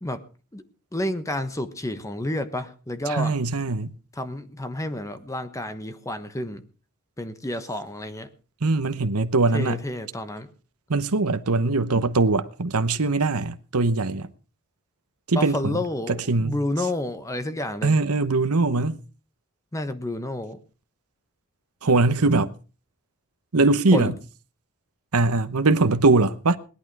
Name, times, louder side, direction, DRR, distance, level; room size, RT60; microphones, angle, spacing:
voice 1, 0.9-3.3 4.1-6.6 7.2-8.3 9.5-10.5 15.3-18.0 19.7-20.6 23.9-24.2, left 1 dB, 15° left, 1.2 m, -30 dB
voice 2, 3.1-3.9 8.6-9.8 10.9-14.3 15.3-15.8 16.1-16.6 17.8-19.0 21.8-22.5 23.5-24.1 25.1-26.6, right 3 dB, 80° right, 1.0 m, -21 dB
19.0 x 11.5 x 4.8 m
head